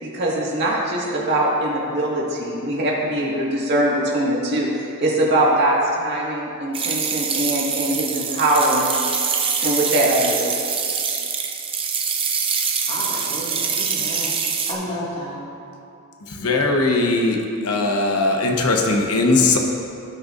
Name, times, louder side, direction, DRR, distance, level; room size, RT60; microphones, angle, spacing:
voice 1, 0.0-8.9 9.6-10.5, right 1 dB, 50° right, -4 dB, 1.9 m, -22 dB
sound 1, 6.7-14.7, right 6 dB, 25° right, 0.6 m, -24 dB
voice 2, 12.8-14.4 14.6-15.4, equal, 30° left, -6 dB, 2.2 m, -31 dB
voice 3, 16.2-19.6, left 2 dB, 85° left, 1 dB, 1.0 m, -19 dB
17.0 x 6.5 x 2.6 m, 2.6 s
head